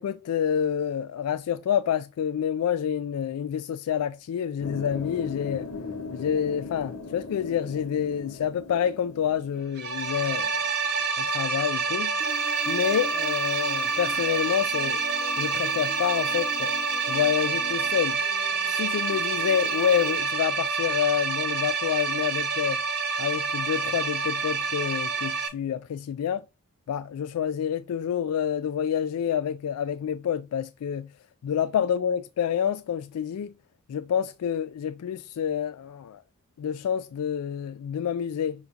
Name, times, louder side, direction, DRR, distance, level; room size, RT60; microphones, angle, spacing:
voice 1, 0.0-5.7 6.1-10.7 11.2-12.2 12.7-15.0 15.4-16.7 17.1-18.2 18.7-22.8 23.2-26.4 26.9-31.1 31.4-33.5 33.9-36.2 36.6-38.7, left 8 dB, 90° left, 0.3 m, -28 dB
sound 1, 4.6-9.6, left 4 dB, 75° left, 0.8 m, -38 dB
sound 2, 9.8-25.5, right 4 dB, 50° right, 0.8 m, -28 dB
Human voice, 12.2-20.2, left 1 dB, 40° left, 0.7 m, -43 dB
5.7 x 2.3 x 3.8 m
head